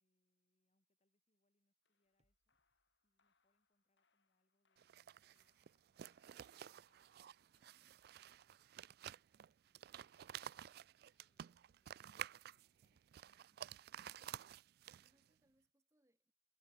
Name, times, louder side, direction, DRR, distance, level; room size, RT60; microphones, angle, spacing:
voice 1, 0.0-2.6 3.0-10.7 11.3-13.8, left 1 dB, 35° left, 3.5 m, -90 dB
sound 1, 1.8-12.0, left 5 dB, 70° left, 3.3 m, -88 dB
sound 2, 2.0-4.3 4.6-4.9 6.2-8.4 11.7-13.6 13.9-14.0, equal, 35° right, 6.0 m, -96 dB
sound 3, 4.8-15.3, right 10 dB, 55° right, 0.3 m, -53 dB
voice 2, 13.9-16.3, right 1 dB, 15° right, 2.7 m, -81 dB
head